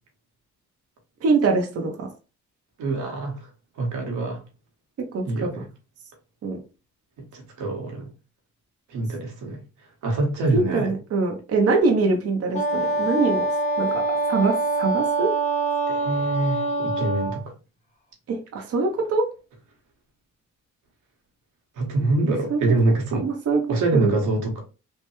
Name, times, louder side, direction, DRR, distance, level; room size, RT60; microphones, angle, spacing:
voice 1, 1.2-2.1 5.1-5.5 6.4-6.6 10.5-13.4 13.8-15.3 18.3-19.3 22.5-22.6 23.2-24.1, right 3 dB, 55° right, 0.8 m, -23 dB
voice 2, 2.8-3.5 3.8-4.4 5.3-5.7 7.2-8.1 8.9-9.6 10.0-10.9 15.9-17.5 21.8-23.3 23.7-24.6, right 2 dB, 85° right, 1.1 m, -25 dB
Wind instrument woodwind instrument, 12.5-17.4, right 3 dB, 20° left, 1.3 m, -24 dB
3.3 x 2.2 x 3.0 m
cardioid pair, 90°, 30 cm